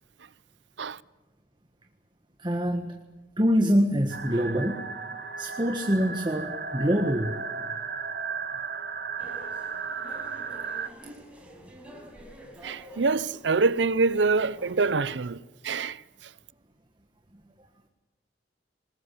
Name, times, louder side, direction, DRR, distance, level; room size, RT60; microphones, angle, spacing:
voice 1, 2.4-2.9 3.4-4.8 5.4-7.3, equal, 25° right, 1.6 m, -25 dB
sound 1, 4.1-10.9, right 5 dB, 55° right, 1.6 m, -35 dB
sound 2, 9.2-14.9, equal, 5° right, 5.3 m, -48 dB
voice 2, 12.6-15.4 15.6-16.0, right 4 dB, 80° right, 0.7 m, -25 dB
26.0 x 20.5 x 8.4 m
head